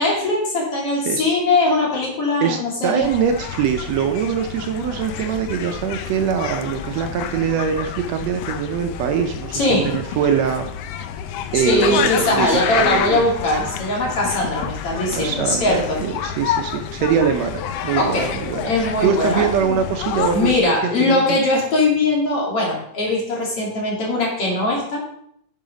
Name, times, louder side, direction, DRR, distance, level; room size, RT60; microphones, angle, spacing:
voice 1, 0.0-3.1 9.5-9.9 11.5-16.0 18.0-18.3 18.6-19.8 20.3-25.0, left 2 dB, 50° left, -3 dB, 3.2 m, -20 dB
voice 2, 2.4-10.7 11.5-12.5 12.8-13.2 15.2-18.7 19.0-21.4, right 7 dB, 75° right, 6 dB, 1.7 m, -23 dB
sound 1, 3.0-20.6, left 9 dB, 75° left, 1.5 m, -29 dB
9.5 x 5.7 x 5.1 m, 0.71 s
omnidirectional pair, 3.4 m